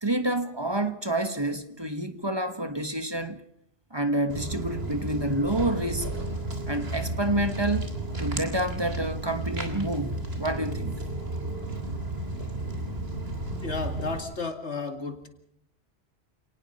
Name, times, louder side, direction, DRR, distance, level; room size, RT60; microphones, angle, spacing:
voice 1, 0.0-3.4 3.9-6.1 6.7-7.9 8.2-11.0, right 1 dB, 25° right, 1.3 m, -28 dB
Walk footsteps, 4.3-14.2, right 2 dB, 65° right, 3.6 m, -33 dB
voice 2, 13.6-15.3, left 4 dB, 90° left, 2.7 m, -33 dB
28.5 x 18.5 x 5.4 m
omnidirectional pair, 1.1 m